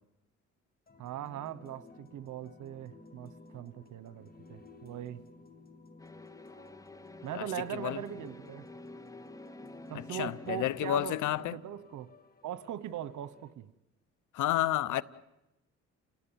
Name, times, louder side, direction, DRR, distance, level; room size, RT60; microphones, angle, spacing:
sound 1, 0.9-13.5, left 3 dB, 30° left, 2.2 m, -55 dB
voice 1, 1.0-5.2 7.2-8.7 9.9-11.2 11.4-12.1 12.4-13.7, right 11 dB, 75° right, 1.2 m, -40 dB
sound 2, 6.0-11.1, left 2 dB, 10° left, 0.9 m, -50 dB
voice 2, 10.1-11.5 14.3-15.0, left 13 dB, 80° left, 0.9 m, -30 dB
29.5 x 18.0 x 9.1 m
cardioid pair, 90°, 30 cm